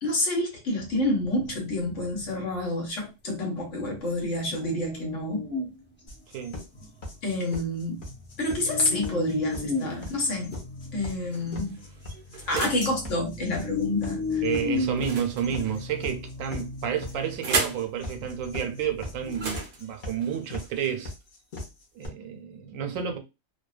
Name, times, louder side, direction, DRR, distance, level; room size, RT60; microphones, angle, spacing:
voice 1, 0.0-5.5 7.2-8.0 8.4-10.6 10.9-11.8 12.5-14.4, left 1 dB, 70° left, 1.2 m, -28 dB
sound 1, 0.8-2.6 4.3-5.8 6.1-6.2 6.7-7.2 7.8-19.5, left 4 dB, 15° left, 0.3 m, -35 dB
sound 2, 6.1-22.1, left 2 dB, 45° left, 0.8 m, -39 dB
sound 3, 9.8-10.5 11.3-12.9 14.9-16.1 16.9-17.9 19.3-21.2, right 4 dB, 50° right, 0.5 m, -35 dB
voice 2, 14.4-21.1 21.9-23.2, right 8 dB, 80° right, 1.0 m, -30 dB
2.6 x 2.1 x 2.4 m
omnidirectional pair, 1.4 m